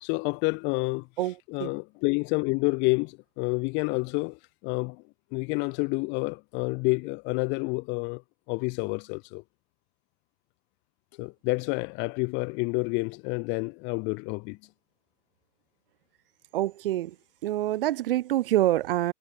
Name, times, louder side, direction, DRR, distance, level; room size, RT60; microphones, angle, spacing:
voice 1, 0.0-1.1 1.5-5.0 5.3-8.2 8.5-9.4 11.2-14.6, left 30 dB, 30° left, 2.4 m, -29 dB
voice 2, 1.2-1.7 16.5-17.2 17.4-19.1, right 14 dB, 45° right, 3.5 m, -26 dB
figure-of-eight pair, 120°, 37 cm